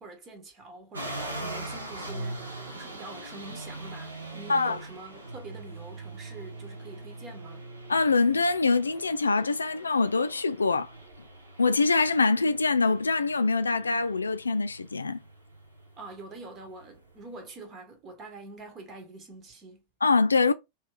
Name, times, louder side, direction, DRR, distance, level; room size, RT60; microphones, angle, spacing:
voice 1, 0.0-7.6 16.0-19.8, right 2 dB, 30° right, 1.3 m, -45 dB
sound 1, 0.9-17.5, right 2 dB, 80° right, 1.2 m, -42 dB
voice 2, 7.9-10.9 11.6-15.2 20.0-20.5, left 4 dB, 75° left, 0.3 m, -24 dB
3.1 x 3.0 x 3.4 m
figure-of-eight pair, 90°, 0 cm